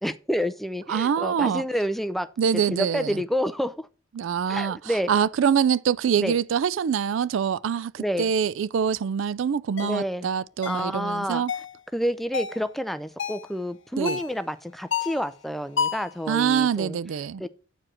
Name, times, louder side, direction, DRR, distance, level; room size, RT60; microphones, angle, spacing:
voice 1, 0.0-2.3 2.7-3.9 4.5-5.1 6.2-6.4 8.0-8.3 9.8-10.3 10.7-11.4 11.9-17.0 17.4-17.5, equal, ahead, 0.4 m, -29 dB
voice 2, 0.9-1.6 2.4-3.2 4.2-4.8 5.1-11.5 14.0-14.2 16.3-17.4, right 7 dB, 75° right, 0.3 m, -24 dB
sound 1, 9.8-10.0 10.6-10.9 11.5-11.8 12.3-12.6 13.2-13.5 14.0-14.3 14.9-15.2 15.8-16.1, left 6 dB, 65° left, 0.7 m, -29 dB
9.0 x 4.8 x 5.9 m
head